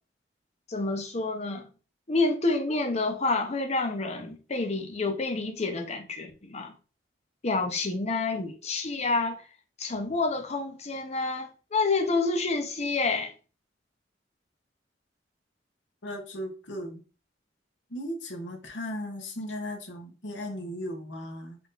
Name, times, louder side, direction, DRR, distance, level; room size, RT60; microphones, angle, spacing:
voice 1, 0.7-1.7 2.1-6.7 7.4-9.4 9.8-13.3, left 3 dB, 35° left, 0.8 m, -28 dB
voice 2, 16.0-17.0 17.9-21.6, equal, 85° left, 1.1 m, -36 dB
4.4 x 2.6 x 4.0 m
head